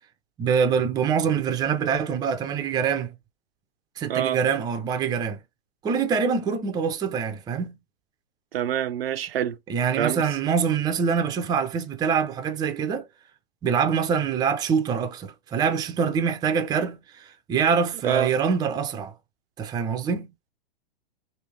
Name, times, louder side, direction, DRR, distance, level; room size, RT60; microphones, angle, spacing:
voice 1, 0.4-3.1 4.0-5.4 5.8-7.8 9.7-13.1 13.6-19.1 19.6-20.3, right 6 dB, 15° right, 0.5 m, -25 dB
voice 2, 4.1-4.4 8.5-9.6 10.0-10.2 18.0-18.3, right 10 dB, 85° right, 0.5 m, -26 dB
3.2 x 2.6 x 3.2 m
hypercardioid pair, 115°, 29 cm